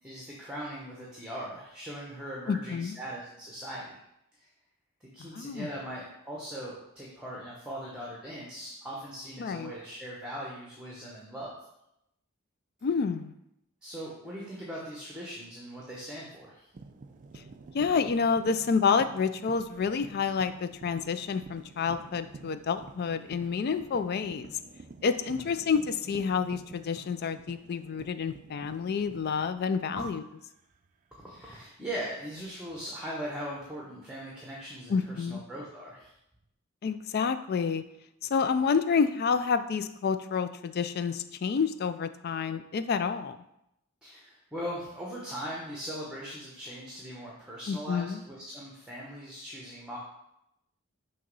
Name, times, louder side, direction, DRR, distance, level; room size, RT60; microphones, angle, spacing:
voice 1, 0.0-4.0 5.1-11.5 13.8-16.6 25.3-25.5 29.9-30.1 31.2-36.1 44.0-50.0, equal, 5° right, -4 dB, 0.9 m, -40 dB
voice 2, 2.5-3.0 5.2-5.7 9.4-9.7 12.8-13.3 17.7-24.5 25.0-30.2 34.9-35.4 36.8-37.8 38.3-43.4 47.7-48.2, left 5 dB, 45° left, 11 dB, 0.3 m, -29 dB
sound 1, 16.7-30.2 30.5-30.9 32.7-32.9 34.7-35.3, right 3 dB, 35° right, 0.4 m, -50 dB
6.4 x 2.9 x 5.3 m, 0.82 s
head